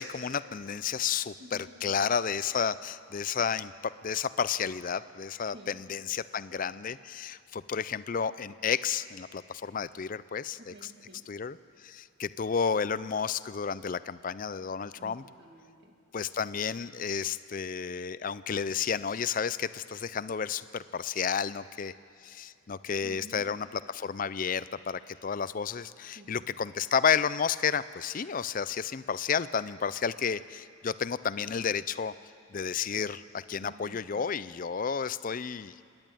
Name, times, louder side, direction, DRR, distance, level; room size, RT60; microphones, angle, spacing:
voice 1, 0.0-10.7 11.3-15.2 16.1-21.9 22.2-23.7 23.9-32.1 32.5-35.7, left 6 dB, 40° left, 16 dB, 0.4 m, -31 dB
voice 2, 1.4-1.7 5.5-5.8 10.6-11.3 15.0-16.0 23.0-23.5 26.1-26.7 33.6-34.4, right 1 dB, 55° right, 2 dB, 2.4 m, -51 dB
27.0 x 10.5 x 9.1 m, 2.5 s
head